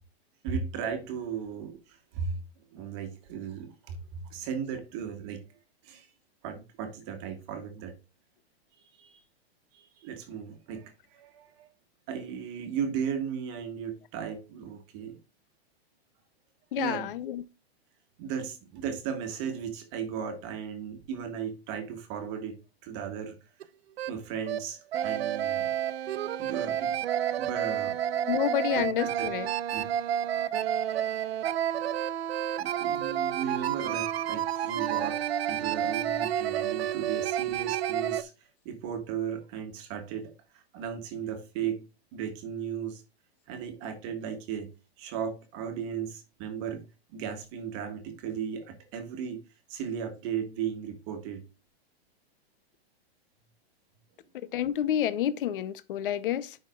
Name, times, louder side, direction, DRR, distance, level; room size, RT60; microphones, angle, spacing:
voice 1, 0.4-2.4 2.7-5.4 5.8-6.1 6.4-8.0 8.9-9.2 9.7-11.7 12.1-15.2 16.8-17.1 18.2-23.4 24.1-25.7 26.4-26.9 27.4-28.0 28.7-29.3 29.7-29.9 32.6-35.2 35.5-41.8 42.1-43.0 43.5-49.4 49.7-51.4 54.4-54.6, right 7 dB, 30° right, 1.5 m, -36 dB
voice 2, 16.7-17.4 28.3-29.5 54.5-56.6, left 11 dB, 55° left, 0.7 m, -29 dB
sound 1, 23.6-23.7 24.0-24.1 24.5-24.6 24.9-38.2, right 10 dB, 70° right, 0.8 m, -30 dB
11.0 x 5.8 x 2.4 m
supercardioid pair, 175°, 32 cm